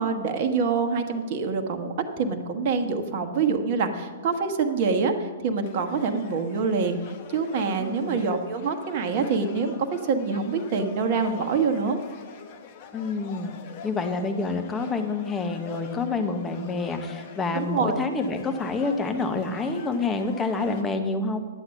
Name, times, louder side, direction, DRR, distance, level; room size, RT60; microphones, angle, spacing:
voice 1, 0.0-7.0 7.3-12.0 17.5-18.0, right 5 dB, 45° right, 6 dB, 1.2 m, -26 dB
sound 1, 5.6-20.8, left 6 dB, 40° left, 1.2 m, -44 dB
voice 2, 7.8-8.2 12.9-13.5 13.8-21.4, left 3 dB, 15° left, 6 dB, 1.1 m, -28 dB
11.0 x 7.7 x 5.8 m, 1.4 s
figure-of-eight pair, 115°, 0 cm